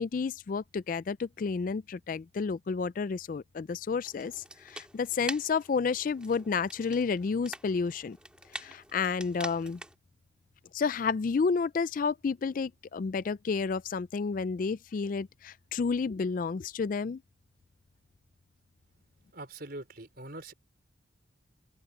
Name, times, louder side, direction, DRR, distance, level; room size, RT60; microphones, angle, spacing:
voice 1, 0.0-8.2 8.5-9.8 10.7-17.2, left 5 dB, 45° left, 0.3 m, -31 dB
sound 1, 4.0-10.0, right 1 dB, 5° right, 1.8 m, -45 dB
voice 2, 19.3-20.5, right 2 dB, 50° right, 4.8 m, -43 dB
open air
head